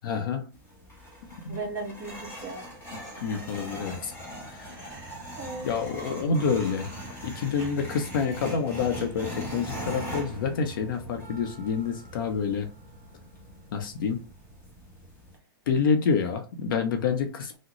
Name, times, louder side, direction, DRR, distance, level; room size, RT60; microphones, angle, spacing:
voice 1, 0.0-0.5 1.4-1.6 2.9-4.1 4.5-4.7 5.6-6.9 7.2-12.7 13.7-14.2 15.7-17.6, left 5 dB, 60° left, 0.7 m, -28 dB
sound 1, 0.5-15.4, right 1 dB, 20° left, 1.1 m, -41 dB
voice 2, 1.5-2.6 3.3-3.5 4.7-5.7 7.6-7.7, right 3 dB, 25° right, 1.5 m, -38 dB
3.6 x 2.1 x 3.0 m
hypercardioid pair, 135°, 12 cm